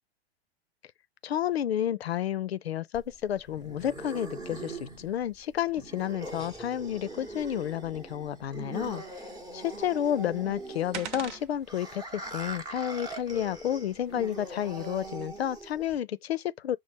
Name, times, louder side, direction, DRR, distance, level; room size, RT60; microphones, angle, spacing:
voice 1, 1.2-9.0 9.5-16.8, left 10 dB, 70° left, 0.5 m, -31 dB
sound 1, 2.9-15.9, right 2 dB, 10° right, 0.8 m, -42 dB
sound 2, 9.8-15.3, right 8 dB, 45° right, 0.7 m, -47 dB
6.0 x 2.0 x 3.2 m
figure-of-eight pair, 100°, 32 cm